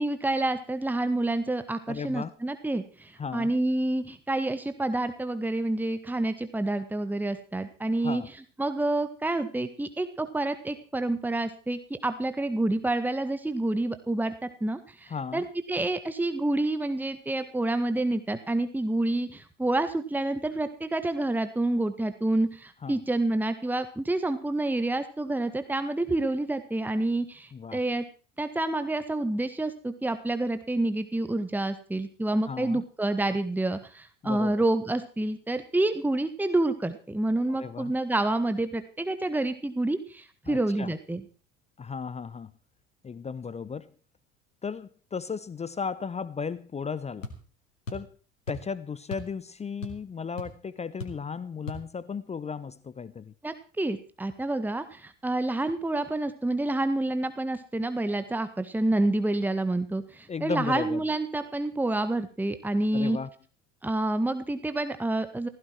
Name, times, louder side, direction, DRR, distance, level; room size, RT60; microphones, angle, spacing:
voice 1, 0.0-8.2 8.6-28.0 28.4-41.2 53.4-63.2 63.8-65.5, right 2 dB, 5° right, 1.6 m, -28 dB
voice 2, 1.9-2.3 3.2-3.5 8.0-8.3 15.1-15.4 22.8-23.0 27.5-27.8 32.4-32.8 34.2-34.6 37.5-37.9 40.5-40.9 41.8-42.5 43.0-43.9 44.6-47.3 47.9-48.2 48.5-53.3 60.3-61.0 62.9-63.3, left 5 dB, 15° left, 0.8 m, -35 dB
sound 1, 47.2-47.4 47.9-48.1 48.5-48.7 49.1-49.3 49.6-50.1 50.4-50.5 51.0-51.2 51.7-51.8, left 2 dB, 80° left, 2.7 m, -38 dB
16.5 x 15.5 x 4.6 m
figure-of-eight pair, 65°, 38 cm